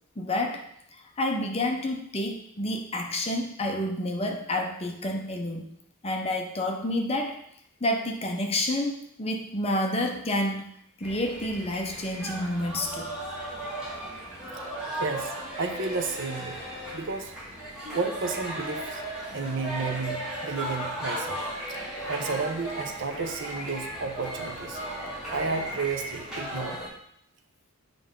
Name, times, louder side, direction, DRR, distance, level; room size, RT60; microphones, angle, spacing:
voice 1, 0.2-5.7 6.0-7.4 7.8-10.7 11.0-13.1 19.3-19.4, left 1 dB, 25° left, 3 dB, 0.8 m, -29 dB
sound 1, 11.0-26.9, right 1 dB, 5° right, 2.7 m, -36 dB
voice 2, 14.2-14.6 15.0-16.6 16.9-17.3 17.9-19.0 19.3-21.4 21.7-21.8 22.1-24.8 25.3-26.8, right 4 dB, 55° right, 5 dB, 0.8 m, -32 dB
7.6 x 5.3 x 3.8 m, 0.70 s
head